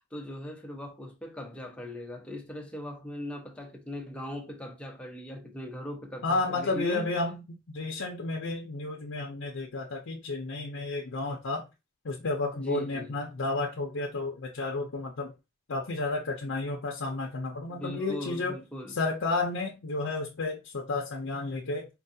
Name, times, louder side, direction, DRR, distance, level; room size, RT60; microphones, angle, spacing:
voice 1, 0.0-7.1 12.5-13.2 17.7-19.0, left 1 dB, 5° left, 0.6 m, -39 dB
voice 2, 6.2-11.6 12.0-15.3 15.7-18.6 18.9-21.9, left 3 dB, 60° left, 0.6 m, -32 dB
4.5 x 2.3 x 2.6 m
head